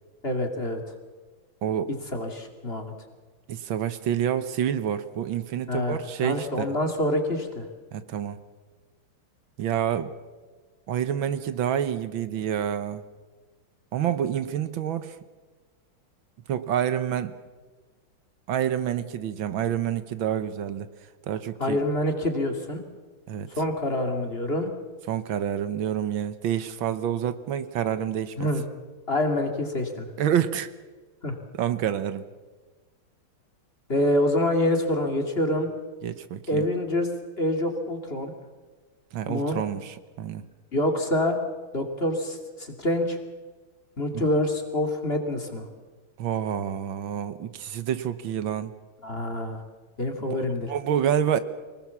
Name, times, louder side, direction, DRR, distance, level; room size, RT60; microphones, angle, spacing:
voice 1, 0.2-0.8 2.1-2.9 5.7-7.7 21.6-22.8 23.6-24.7 28.4-28.6 29.1-30.1 31.2-31.4 33.9-35.7 36.5-37.1 37.4-38.3 39.3-39.6 40.7-41.4 41.7-43.2 44.0-45.7 49.0-49.6 50.0-50.7, left 1 dB, 30° left, 4 dB, 2.5 m, -26 dB
voice 2, 1.6-1.9 3.5-6.7 7.9-8.4 9.6-10.1 10.9-13.0 13.9-15.2 16.5-17.3 18.5-20.9 21.3-21.8 23.3-23.5 25.1-28.5 30.2-30.7 31.6-32.2 36.0-36.6 39.1-40.4 44.1-44.2 46.2-48.7 50.3-50.4 50.7-51.4, right 9 dB, 75° right, 12 dB, 1.7 m, -28 dB
24.0 x 19.5 x 7.1 m, 1.3 s
omnidirectional pair, 2.2 m